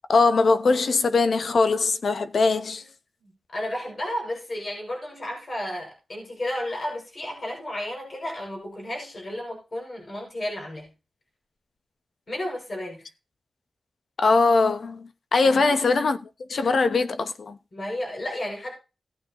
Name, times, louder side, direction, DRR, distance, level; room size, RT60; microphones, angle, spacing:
voice 1, 0.1-2.8 14.2-17.6, left 3 dB, 65° left, 1.0 m, -21 dB
voice 2, 3.2-10.9 12.3-13.1 15.4-15.7 17.7-18.7, left 1 dB, 45° left, 6.3 m, -33 dB
17.0 x 8.7 x 3.0 m
wide cardioid pair, 120°, 0 cm